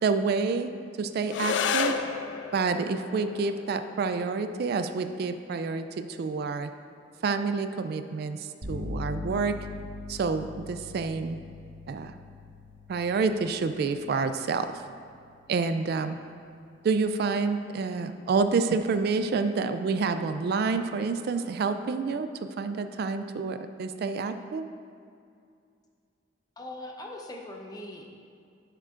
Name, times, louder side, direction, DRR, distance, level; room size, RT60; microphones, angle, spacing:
voice 1, 0.0-2.0 2.5-6.7 7.2-9.5 10.1-11.4 11.9-12.1 12.9-14.8 15.5-16.2 16.8-22.3 22.6-24.7, right 4 dB, 55° right, 9 dB, 0.3 m, -28 dB
sound 1, 1.3-10.3, left 6 dB, 80° left, 0.4 m, -36 dB
sound 2, 8.6-16.3, left 3 dB, 75° right, 1.4 m, -42 dB
voice 2, 26.6-28.2, left 1 dB, 20° left, 1 dB, 0.7 m, -41 dB
10.5 x 6.8 x 2.5 m, 2.4 s
head